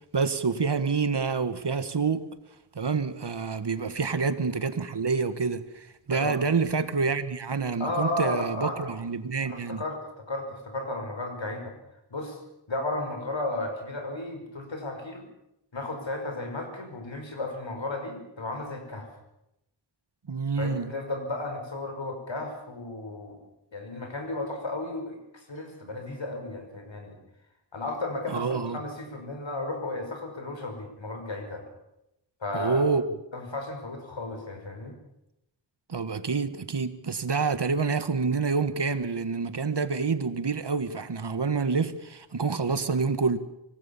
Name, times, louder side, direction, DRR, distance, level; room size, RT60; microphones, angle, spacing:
voice 1, 0.1-2.3 2.8-9.8 20.3-20.9 28.3-28.8 32.5-33.0 35.9-43.4, right 4 dB, 65° right, 1.8 m, -27 dB
voice 2, 6.1-6.4 7.8-8.9 9.4-11.7 12.1-12.4 12.7-15.3 15.7-19.1 20.6-23.4 23.7-27.2 27.7-31.6 32.4-32.9 33.3-35.0, left 2 dB, 80° left, 5.7 m, -34 dB
26.0 x 18.5 x 7.3 m
wide cardioid pair, 65°, 45 cm